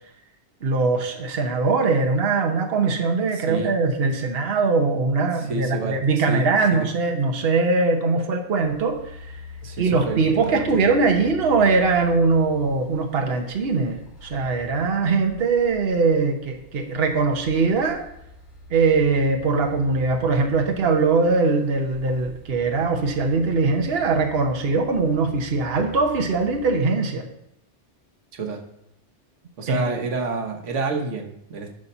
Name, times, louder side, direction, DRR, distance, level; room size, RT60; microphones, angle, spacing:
voice 1, 0.6-9.3 9.8-18.0 18.7-27.3 29.7-29.8, right 4 dB, 55° right, 4 dB, 1.2 m, -21 dB
voice 2, 3.3-3.7 5.5-6.9 9.6-10.2 10.5-10.8 28.3-28.6 29.6-31.7, right 3 dB, 90° right, 4 dB, 1.4 m, -29 dB
sound 1, 8.6-26.7, left 4 dB, 60° left, 3.9 m, -43 dB
11.5 x 4.3 x 5.4 m, 0.77 s
omnidirectional pair, 1.2 m